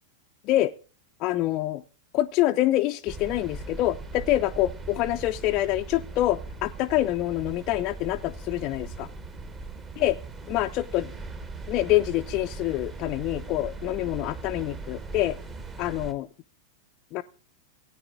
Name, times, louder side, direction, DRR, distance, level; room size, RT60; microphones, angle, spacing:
voice 1, 1.2-1.8 2.1-9.1 10.0-10.2 10.5-11.1 11.7-15.4 15.8-16.3 17.1-17.2, left 15 dB, 40° left, 6 dB, 0.4 m, -26 dB
sound 1, 3.1-16.1, right 3 dB, 25° right, 1.2 m, -39 dB
17.5 x 9.3 x 2.5 m, 0.36 s
figure-of-eight pair, 90°, 0 cm